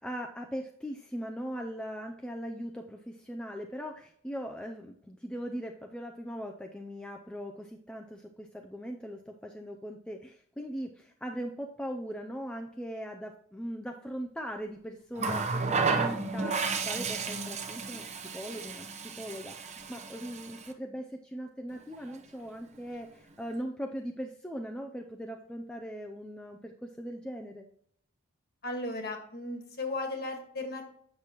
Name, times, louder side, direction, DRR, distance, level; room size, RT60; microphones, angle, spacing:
voice 1, 0.0-27.7, equal, 5° left, 2 dB, 0.4 m, -40 dB
Water tap faucet, 15.2-20.7 21.9-22.1, right 4 dB, 30° right, 0.7 m, -32 dB
voice 2, 28.6-30.9, left 2 dB, 45° left, 4 dB, 1.6 m, -36 dB
8.5 x 6.1 x 3.0 m, 0.64 s
head